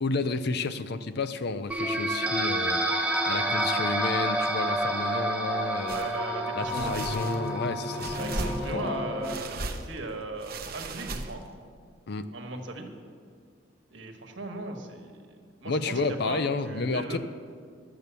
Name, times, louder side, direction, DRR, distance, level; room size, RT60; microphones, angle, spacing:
voice 1, 0.0-2.8 3.3-6.1 6.5-9.0 12.1-12.3 15.7-17.2, left 3 dB, 60° left, 11 dB, 0.6 m, -31 dB
sound 1, 1.7-9.3, right 1 dB, 5° right, 0.8 m, -29 dB
sound 2, 5.9-6.1 6.6-7.5 8.0-8.9 9.2-10.0 10.4-11.5, right 2 dB, 50° right, 0.9 m, -36 dB
voice 2, 5.9-7.0 8.2-11.4 12.3-12.9 13.9-17.2, right 2 dB, 70° right, 3 dB, 1.4 m, -38 dB
12.0 x 7.8 x 6.9 m, 2.1 s
head